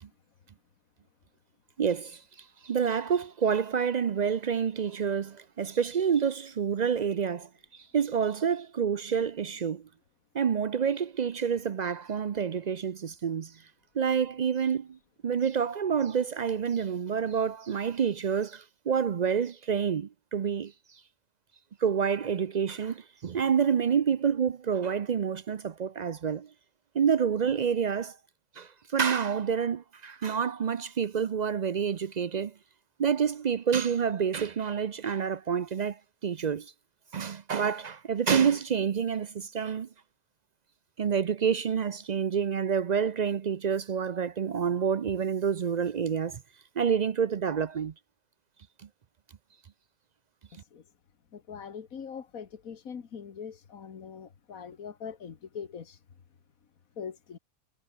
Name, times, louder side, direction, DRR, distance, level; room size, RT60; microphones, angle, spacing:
voice 1, 1.8-2.2 2.6-7.5 7.9-9.8 10.3-13.5 14.0-15.0 15.2-20.7 21.8-26.5 26.9-28.2 28.6-32.5 33.0-36.7 37.1-39.9 41.0-46.4 46.8-47.9, right 7 dB, 60° right, 0.4 m, -28 dB
voice 2, 51.3-56.0 57.0-57.4, left 7 dB, 70° left, 2.0 m, -42 dB
omnidirectional pair, 1.5 m